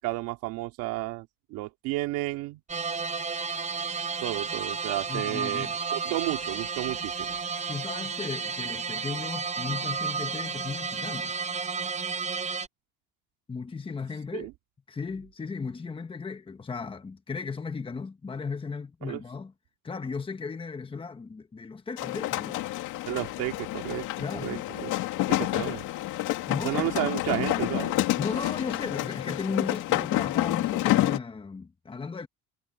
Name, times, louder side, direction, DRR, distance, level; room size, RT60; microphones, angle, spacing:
voice 1, 0.0-2.6 4.2-7.4 14.3-14.5 19.0-19.2 23.1-24.1 24.4-24.9 25.3-25.8 26.6-27.9, right 19 dB, 80° right, 3.1 m, -32 dB
sound 1, 2.7-12.7, right 5 dB, 20° right, 4.1 m, -32 dB
voice 2, 5.1-5.8 7.7-11.3 13.5-14.5 14.9-19.5 19.8-22.6 24.2-24.6 25.6-25.8 26.5-26.8 28.2-32.3, left 4 dB, 15° left, 1.4 m, -36 dB
sound 2, 22.0-31.2, left 16 dB, 70° left, 2.6 m, -28 dB
cardioid pair, 130°, 32 cm